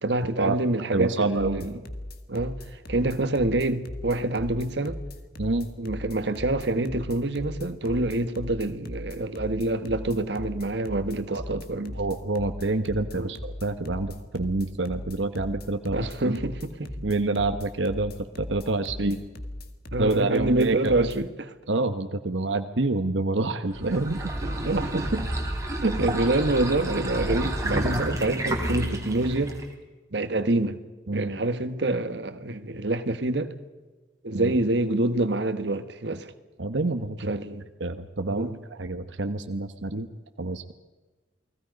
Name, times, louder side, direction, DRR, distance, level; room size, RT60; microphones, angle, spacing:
voice 1, 0.0-1.7 2.3-2.6 2.9-5.0 5.8-12.0 13.1-13.3 15.9-16.9 19.0-19.2 19.9-21.5 24.4-25.3 25.8-29.6 30.1-30.8 31.1-33.5 34.2-36.3 37.3-37.6 38.3-38.6, right 2 dB, 65° right, 1.4 m, -26 dB
voice 2, 0.9-1.7 5.4-5.7 11.3-11.4 12.0-16.4 17.0-19.2 20.0-21.1 21.7-24.2 31.1-31.3 34.3-34.6 36.6-37.3 37.8-40.1 40.4-40.6, right 2 dB, 80° right, 1.2 m, -27 dB
sound 1, 1.4-21.2, left 1 dB, 50° left, 2.1 m, -38 dB
sound 2, 23.7-29.7, right 1 dB, 15° right, 3.2 m, -30 dB
29.5 x 20.0 x 5.3 m
head